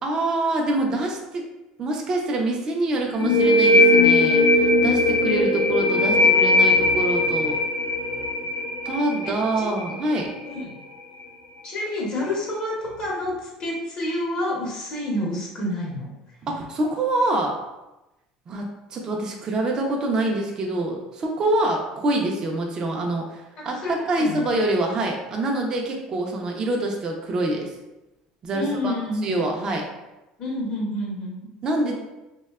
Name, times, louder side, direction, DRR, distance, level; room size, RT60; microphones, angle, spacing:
voice 1, 0.0-1.5 1.8-7.6 8.8-10.3 16.5-17.6 18.5-27.7 28.4-28.9 29.2-29.9 31.6-31.9, right 2 dB, 30° right, 0 dB, 0.4 m, -25 dB
sound 1, 3.2-10.6, left 2 dB, 85° left, 0.4 m, -19 dB
voice 2, 11.6-16.2 23.6-24.4 28.5-29.4 30.4-31.5 31.8-31.9, left 1 dB, 45° left, -3 dB, 0.7 m, -29 dB
2.6 x 2.1 x 2.3 m, 1.0 s
supercardioid pair, 120°, 2 cm